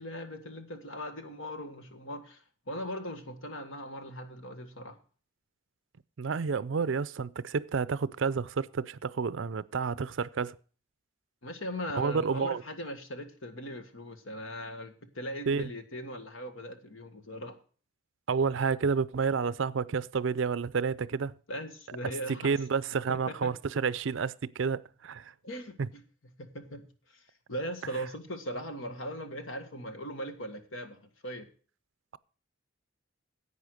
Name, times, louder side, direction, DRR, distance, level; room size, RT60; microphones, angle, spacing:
voice 1, 0.0-5.0 11.4-17.6 21.5-22.6 23.1-23.5 25.4-26.0 26.4-27.2 27.5-31.5, equal, 80° left, 1.6 m, -39 dB
voice 2, 6.2-10.6 11.9-12.6 15.5-15.7 18.3-21.3 22.4-25.3, right 5 dB, 70° right, 0.5 m, -30 dB
11.0 x 8.4 x 6.4 m
head